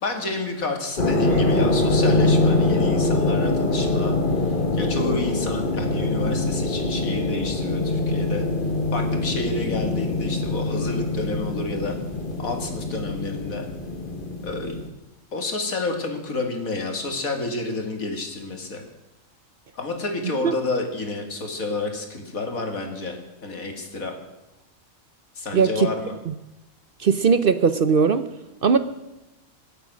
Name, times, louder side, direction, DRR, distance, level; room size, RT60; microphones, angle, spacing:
voice 1, 0.0-8.5 8.9-12.0 12.4-13.7 14.4-14.8 15.3-18.8 19.7-24.2 25.4-26.1, left 3 dB, 90° left, 4 dB, 2.6 m, -30 dB
sound 1, 1.0-14.9, left 2 dB, 40° left, 1.4 m, -23 dB
voice 2, 25.5-25.9 27.0-28.3 28.6-28.8, right 6 dB, 50° right, 11 dB, 0.8 m, -19 dB
24.5 x 8.2 x 6.2 m, 0.97 s
omnidirectional pair, 1.4 m